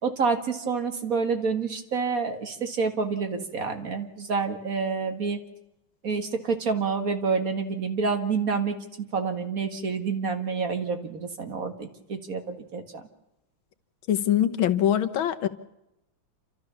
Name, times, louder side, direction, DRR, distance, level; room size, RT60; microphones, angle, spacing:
voice 1, 0.0-5.4 6.0-13.0, right 5 dB, 45° right, 6 dB, 2.1 m, -28 dB
voice 2, 14.1-15.5, left 10 dB, 90° left, 11 dB, 1.9 m, -23 dB
28.5 x 13.5 x 7.1 m, 0.89 s
omnidirectional pair, 2.1 m